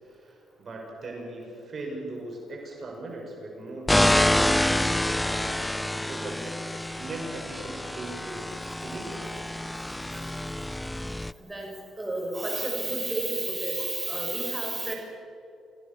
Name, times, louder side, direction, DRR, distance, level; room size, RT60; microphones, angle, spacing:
voice 1, 0.1-6.5 7.0-8.5 8.8-9.3, right 2 dB, 45° right, 0 dB, 6.2 m, -39 dB
sound 1, 3.9-11.3, left 1 dB, 10° left, 0.6 m, -27 dB
voice 2, 11.5-14.9, right 2 dB, 15° right, 0 dB, 6.7 m, -31 dB
29.0 x 17.0 x 7.0 m, 2.7 s
cardioid pair, 90°, 0 cm